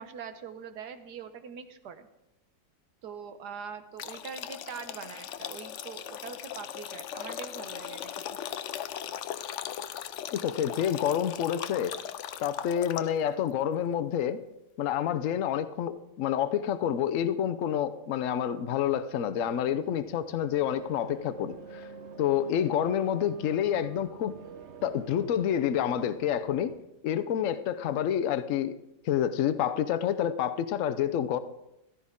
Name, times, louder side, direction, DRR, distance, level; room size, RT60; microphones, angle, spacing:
voice 1, 0.0-2.1 3.0-8.0 8.3-8.4, right 6 dB, 70° right, 10 dB, 1.4 m, -43 dB
sound 1, 4.0-13.3, left 10 dB, 85° left, 0.6 m, -39 dB
voice 2, 10.3-11.9 12.4-14.4 14.8-21.9 22.2-24.3 24.8-26.7 27.0-28.7 29.0-31.4, left 9 dB, 60° left, 11 dB, 0.9 m, -28 dB
sound 2, 19.4-26.8, right 5 dB, 50° right, 1.0 m, -47 dB
14.5 x 13.0 x 3.7 m, 0.88 s
omnidirectional pair, 1.9 m